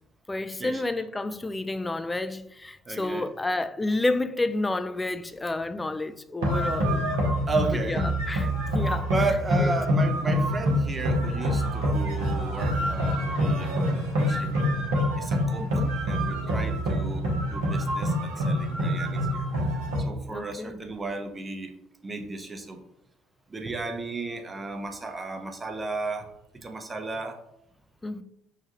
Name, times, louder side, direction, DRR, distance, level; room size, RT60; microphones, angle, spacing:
voice 1, 0.3-7.1 7.9-8.0 8.3-9.1 9.6-9.7 15.6-15.9 20.3-20.8 28.0-28.2, left 2 dB, 15° left, 0.3 m, -30 dB
voice 2, 2.9-3.3 7.5-8.1 9.1-14.6 15.0-19.5 20.0-21.7 22.0-22.8 23.5-27.4, right 3 dB, 25° right, 0.7 m, -34 dB
sound 1, 6.4-20.0, equal, 70° right, 1.0 m, -26 dB
5.7 x 2.3 x 2.8 m
figure-of-eight pair, 55°, 0 cm